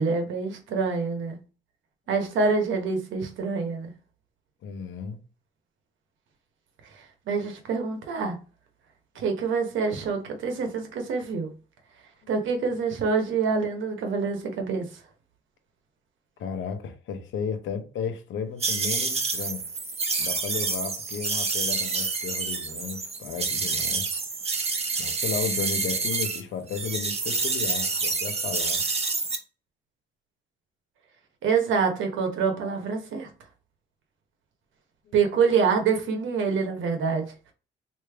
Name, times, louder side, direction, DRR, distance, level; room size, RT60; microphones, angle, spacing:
voice 1, 0.0-1.4 2.1-3.9 6.9-8.4 9.1-11.5 12.3-14.9 31.4-33.3 35.1-37.3, right 5 dB, 75° right, 1.0 m, -26 dB
voice 2, 4.6-5.2 16.4-19.6 20.2-24.1 25.0-28.8 35.1-35.2, left 6 dB, 75° left, 0.8 m, -34 dB
sound 1, 18.6-26.4 26.7-29.4, right 4 dB, 30° right, 0.8 m, -28 dB
3.2 x 2.7 x 3.4 m
cardioid pair, 90°, 20 cm